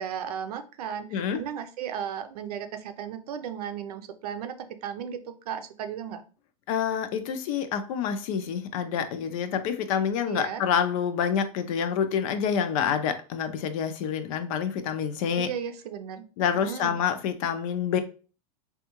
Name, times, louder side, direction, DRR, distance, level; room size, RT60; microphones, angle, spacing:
voice 1, 0.0-4.6 4.8-6.2 10.3-10.6 15.4-16.2 16.5-17.0, right 8 dB, 80° right, 0.5 m, -35 dB
voice 2, 6.7-15.5 16.4-18.0, left 7 dB, 60° left, 0.6 m, -27 dB
3.4 x 2.3 x 2.9 m
supercardioid pair, 125°, 19 cm